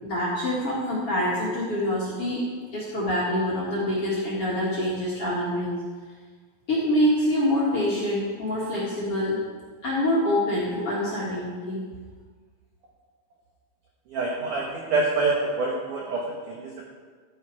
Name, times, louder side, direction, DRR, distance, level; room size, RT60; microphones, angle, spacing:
voice 1, 0.0-2.4 2.7-5.8 6.7-9.4 9.8-11.8, left 1 dB, 45° left, -6 dB, 2.0 m, -25 dB
voice 2, 14.1-16.9, right 3 dB, 80° right, -1 dB, 1.8 m, -26 dB
13.0 x 10.0 x 4.8 m, 1.5 s
omnidirectional pair, 5.5 m